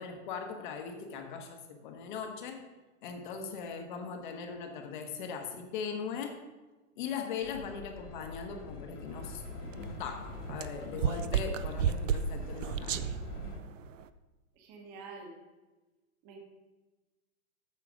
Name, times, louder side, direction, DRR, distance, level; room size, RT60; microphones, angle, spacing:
voice 1, 0.0-2.6 3.0-6.4 7.0-9.4 10.0-13.0, left 6 dB, 35° left, 5 dB, 1.0 m, -39 dB
Train, 7.4-13.6, left 3 dB, 80° left, 2.3 m, -45 dB
sound 1, 9.1-14.1, right 7 dB, 60° right, 0.5 m, -34 dB
voice 2, 14.6-15.3 16.2-16.4, right 4 dB, 20° right, 1 dB, 1.2 m, -47 dB
8.6 x 6.7 x 4.9 m, 1.2 s
hypercardioid pair, 160°, 45 cm